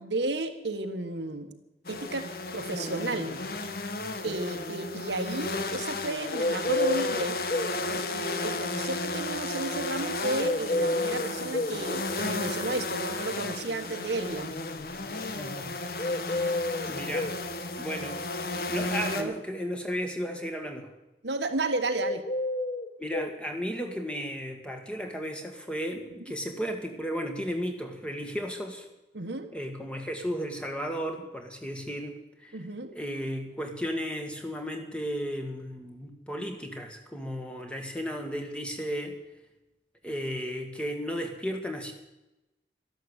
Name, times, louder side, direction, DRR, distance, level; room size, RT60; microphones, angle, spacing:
voice 1, 0.0-1.5 1.9-2.3 2.5-3.4 4.2-7.4 7.9-14.6 19.2-19.3 21.2-22.2 26.3-26.4 29.1-29.5 32.5-32.9, right 2 dB, 85° right, 6 dB, 1.6 m, -33 dB
sound 1, 1.8-19.2, left 2 dB, 55° left, 1.2 m, -33 dB
sound 2, 6.3-7.8 10.4-11.8 16.0-17.4 22.0-23.3, left 2 dB, 30° left, 0.9 m, -29 dB
voice 2, 15.4-15.7 16.9-17.3 17.8-18.2 18.7-20.9 23.0-28.9 29.5-32.6 32.9-39.2 40.0-41.9, equal, 5° left, 3 dB, 1.8 m, -34 dB
13.5 x 11.5 x 8.2 m, 0.99 s
head